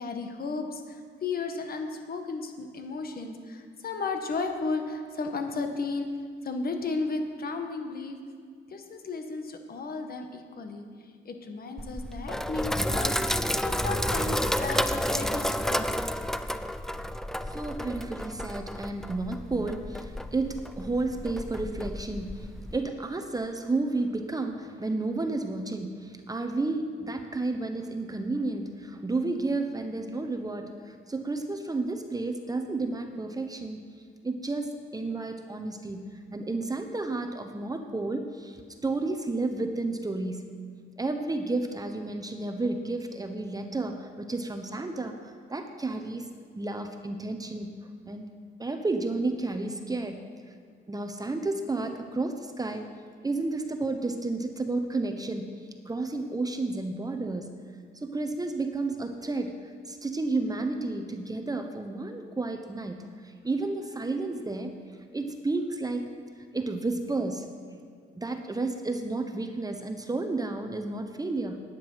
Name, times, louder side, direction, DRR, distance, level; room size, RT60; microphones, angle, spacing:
voice 1, 0.0-6.1 6.4-8.2 8.7-10.8 11.2-15.9, left 3 dB, 50° left, 5 dB, 1.4 m, -34 dB
Sink (filling or washing), 11.8-22.8, equal, ahead, 0.4 m, -31 dB
voice 2, 17.4-33.8 34.2-40.4 41.0-46.3 46.6-47.7 48.1-48.3 48.6-50.2 50.9-52.9 53.2-55.5 55.9-57.5 57.9-64.7 65.1-66.0 66.5-67.5 68.1-71.6, right 2 dB, 20° right, 5 dB, 0.9 m, -31 dB
10.5 x 9.1 x 5.6 m, 2.1 s
cardioid pair, 90°, 20 cm